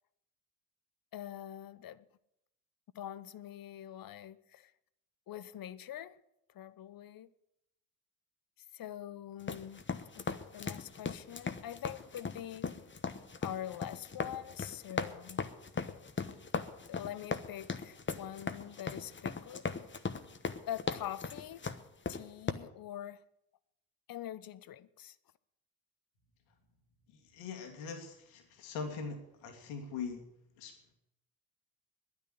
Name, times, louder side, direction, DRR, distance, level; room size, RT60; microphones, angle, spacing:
voice 1, 1.1-2.0 2.9-4.7 5.3-6.2 6.5-7.3 8.7-9.8 10.1-12.7 13.4-15.5 16.9-19.6 20.7-21.6 22.1-23.2 24.1-25.2, left 11 dB, 45° left, 0.9 m, -44 dB
sound 1, 9.4-22.5, left 5 dB, 25° left, 1.1 m, -38 dB
voice 2, 27.3-30.2 30.6-30.7, left 5 dB, 75° left, 2.4 m, -41 dB
10.5 x 9.6 x 10.0 m
hypercardioid pair, 55°, 48 cm